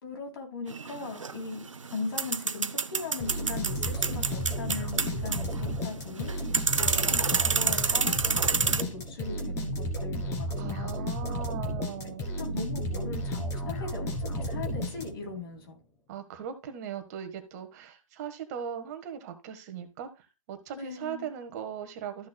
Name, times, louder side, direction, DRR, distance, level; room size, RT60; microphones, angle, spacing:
voice 1, 0.0-6.4 6.9-10.9 11.2-11.3 12.3-15.8 20.7-21.3, left 3 dB, 45° left, 2 dB, 3.6 m, -39 dB
sound 1, 0.7-8.8, right 5 dB, 70° right, 0.7 m, -29 dB
sound 2, 3.2-15.4, equal, 15° left, 2.3 m, -33 dB
voice 2, 10.5-12.2 16.1-22.3, right 8 dB, 30° right, 9 dB, 1.5 m, -39 dB
13.5 x 6.1 x 2.3 m, 0.27 s
figure-of-eight pair, 125°, 17 cm